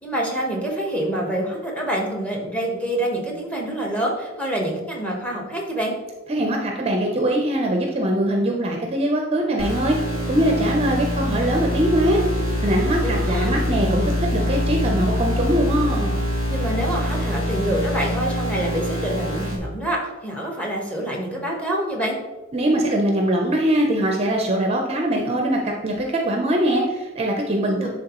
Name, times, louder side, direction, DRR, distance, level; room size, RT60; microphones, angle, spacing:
voice 1, 0.0-6.0 13.0-13.5 16.5-22.2 27.6-27.9, right 1 dB, 5° left, 0 dB, 1.2 m, -26 dB
voice 2, 6.3-10.0 10.3-12.2 12.6-16.2 22.5-27.9, right 1 dB, 30° right, 1 dB, 0.6 m, -22 dB
sound 1, 9.6-19.6, left 1 dB, 80° left, 2.2 m, -24 dB
10.5 x 3.5 x 3.0 m, 1.1 s
head